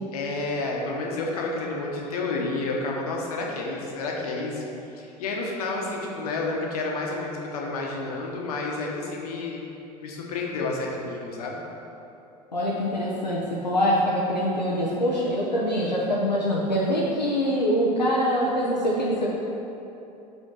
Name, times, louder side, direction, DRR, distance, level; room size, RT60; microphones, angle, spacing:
voice 1, 0.1-9.6 10.0-11.6, left 3 dB, 65° left, -1 dB, 1.3 m, -30 dB
voice 2, 12.5-19.3, equal, 90° left, -6 dB, 0.8 m, -24 dB
5.6 x 5.4 x 6.4 m, 2.9 s
figure-of-eight pair, 75°, 21 cm